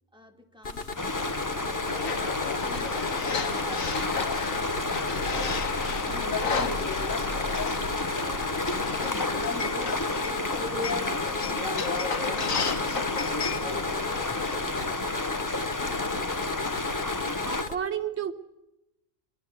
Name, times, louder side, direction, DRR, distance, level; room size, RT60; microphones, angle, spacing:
voice 1, 0.1-1.7, left 1 dB, 5° right, 1.9 m, -52 dB
sound 1, 0.6-17.8, left 3 dB, 45° left, 1.6 m, -35 dB
sound 2, 1.0-17.6, left 2 dB, 15° left, 0.8 m, -31 dB
sound 3, 1.9-14.6, left 5 dB, 70° left, 1.8 m, -33 dB
voice 2, 17.5-18.3, right 8 dB, 55° right, 1.5 m, -31 dB
23.5 x 23.5 x 7.9 m
omnidirectional pair, 1.4 m